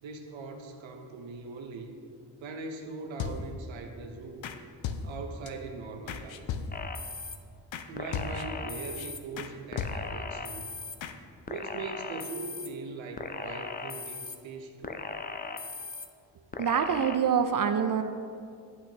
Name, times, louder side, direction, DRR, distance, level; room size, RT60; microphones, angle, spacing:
voice 1, 0.0-1.9 2.4-4.5 5.0-6.5 7.9-10.7 11.5-15.0, right 3 dB, 75° right, 5 dB, 0.8 m, -41 dB
sound 1, 3.2-3.7 4.4-4.6 4.8-5.5 6.1-7.0 7.7-7.9 8.1-8.7 9.0-9.1 9.4-9.5 9.8-10.3 11.0-11.1, left 6 dB, 75° left, 0.6 m, -36 dB
sound 2, 6.7-7.4 8.0-9.2 9.7-11.0 11.5-12.7 13.2-14.4 14.8-16.1 16.5-17.2, left 4 dB, 20° left, 0.5 m, -38 dB
voice 2, 16.6-18.0, right 7 dB, 45° right, 8 dB, 0.5 m, -25 dB
10.5 x 5.8 x 2.9 m, 2.4 s
supercardioid pair, 45°, 46 cm